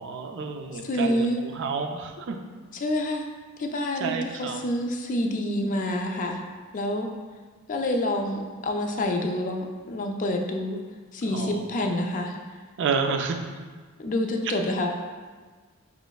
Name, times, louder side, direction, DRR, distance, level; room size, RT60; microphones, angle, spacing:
voice 1, 0.0-2.4 4.0-4.6 11.2-11.6 12.8-13.4, right 5 dB, 55° right, 4 dB, 0.3 m, -30 dB
voice 2, 0.8-1.4 2.7-3.2 3.6-6.4 6.7-7.1 7.7-10.8 11.1-12.4 14.0-14.9, left 1 dB, 35° left, 3 dB, 0.3 m, -27 dB
5.0 x 3.0 x 2.3 m, 1.4 s
head